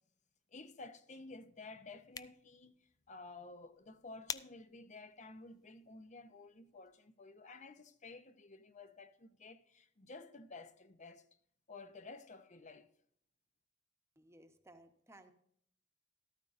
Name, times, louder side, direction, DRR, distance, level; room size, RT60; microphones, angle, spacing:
voice 1, 0.5-11.3 11.7-12.9, left 3 dB, 40° left, 0.7 m, -53 dB
sound 1, 1.9-7.0, left 6 dB, 20° left, 0.3 m, -51 dB
voice 2, 14.2-15.3, right 1 dB, 15° right, 1.0 m, -60 dB
13.5 x 13.5 x 2.6 m
head